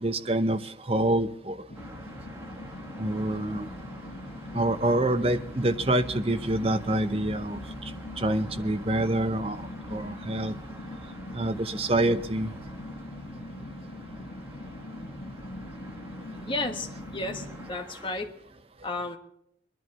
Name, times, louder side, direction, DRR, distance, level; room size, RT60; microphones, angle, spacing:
voice 1, 0.0-1.6 3.0-3.7 4.5-7.6 8.2-10.5 11.3-12.5, right 1 dB, 30° right, 9 dB, 0.8 m, -26 dB
sound 1, 1.7-17.7, left 1 dB, 85° left, 1.8 m, -42 dB
sound 2, 1.7-18.1, right 1 dB, 15° right, 1.7 m, -47 dB
voice 2, 16.5-18.3 18.8-19.2, left 2 dB, 30° left, 4 dB, 1.3 m, -33 dB
24.5 x 11.0 x 4.2 m, 0.75 s
head